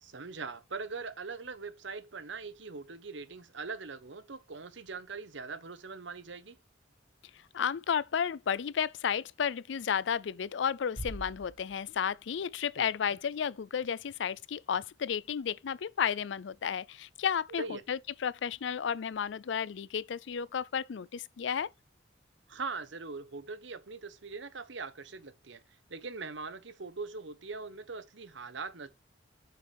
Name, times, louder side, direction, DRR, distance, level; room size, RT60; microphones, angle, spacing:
voice 1, 0.0-6.6 12.8-12.9 17.6-17.8 22.5-25.6 25.9-28.9, right 4 dB, 75° right, 1.1 m, -41 dB
voice 2, 7.5-21.7, left 7 dB, 75° left, 0.4 m, -32 dB
Bass drum, 11.0-12.6, right 1 dB, 25° right, 2.4 m, -44 dB
8.5 x 5.8 x 3.5 m
head